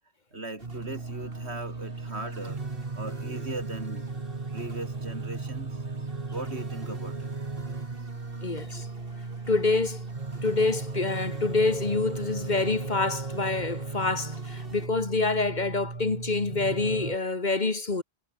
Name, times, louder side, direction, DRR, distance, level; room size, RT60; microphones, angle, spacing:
voice 1, 0.3-2.6 3.0-4.1 4.5-5.8 6.3-7.3, right 2 dB, 80° right, 4.4 m, -38 dB
sound 1, 0.6-17.2, right 4 dB, 35° right, 1.4 m, -36 dB
sound 2, 0.6-14.9, right 2 dB, 55° right, 4.6 m, -47 dB
voice 2, 8.4-8.9 9.5-10.1 10.4-18.0, left 3 dB, 45° left, 1.7 m, -27 dB
omnidirectional pair, 1.1 m